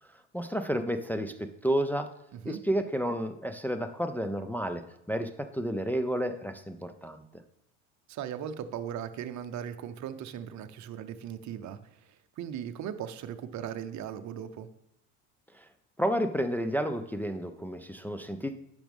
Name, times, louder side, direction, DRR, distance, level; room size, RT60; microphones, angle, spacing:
voice 1, 0.3-2.1 2.5-4.8 5.1-7.2 15.5-15.7 16.0-18.5, equal, 5° left, 6 dB, 0.3 m, -31 dB
voice 2, 8.1-14.7, right 9 dB, 40° right, 9 dB, 0.8 m, -38 dB
10.0 x 6.2 x 3.5 m, 0.82 s
hypercardioid pair, 90°, 44 cm